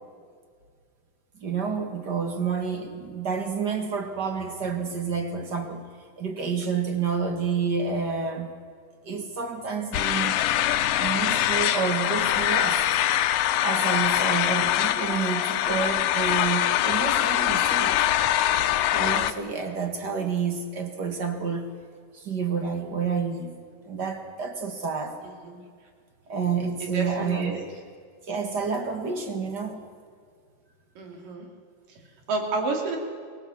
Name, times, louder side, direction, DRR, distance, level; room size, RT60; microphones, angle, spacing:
voice 1, 1.4-5.8 6.2-8.5 9.0-10.4 11.0-12.8 13.6-18.0 18.9-21.7 22.1-23.6 23.8-25.2 26.3-27.7 28.3-29.9, right 5 dB, 40° right, 5 dB, 1.7 m, -29 dB
sound 1, 9.9-19.3, left 12 dB, 85° left, 2.4 m, -23 dB
voice 2, 26.8-27.6 31.0-31.5 32.3-33.0, right 3 dB, 80° right, 2 dB, 4.4 m, -30 dB
24.0 x 17.5 x 7.1 m, 2.1 s
omnidirectional pair, 3.8 m